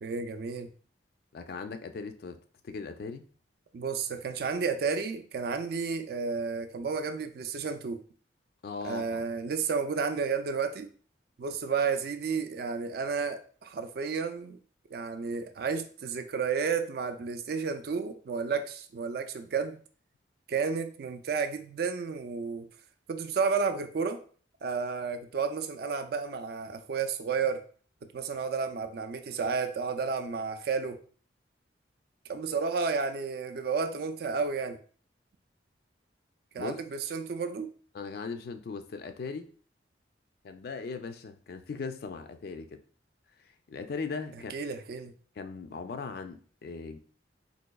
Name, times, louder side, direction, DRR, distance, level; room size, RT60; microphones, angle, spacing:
voice 1, 0.0-0.7 3.7-8.0 8.8-10.9 11.4-14.6 14.9-19.8 20.5-22.7 23.1-24.2 24.6-27.6 28.1-31.0 32.3-34.8 36.5-37.7 44.5-45.1, right 5 dB, 55° right, 8 dB, 0.3 m, -32 dB
voice 2, 1.3-2.4 2.6-3.3 8.6-9.3 36.6-36.7 37.9-39.5 40.4-42.8 43.7-44.5 45.4-47.0, left 4 dB, 55° left, 8 dB, 0.3 m, -38 dB
4.0 x 2.6 x 2.2 m, 0.43 s
head